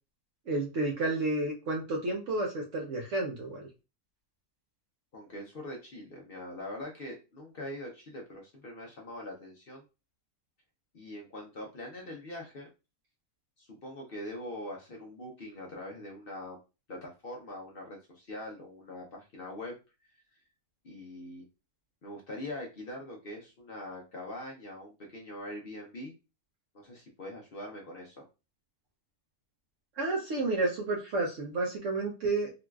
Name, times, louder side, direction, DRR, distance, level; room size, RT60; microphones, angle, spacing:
voice 1, 0.5-3.6 30.0-32.5, right 2 dB, 65° right, 0 dB, 0.9 m, -31 dB
voice 2, 5.1-9.8 10.9-12.7 13.6-16.6 16.9-19.8 20.8-21.5 22.0-26.1 26.7-28.2, left 1 dB, 50° left, 0 dB, 0.7 m, -43 dB
3.8 x 2.3 x 2.2 m, 0.29 s
omnidirectional pair, 1.5 m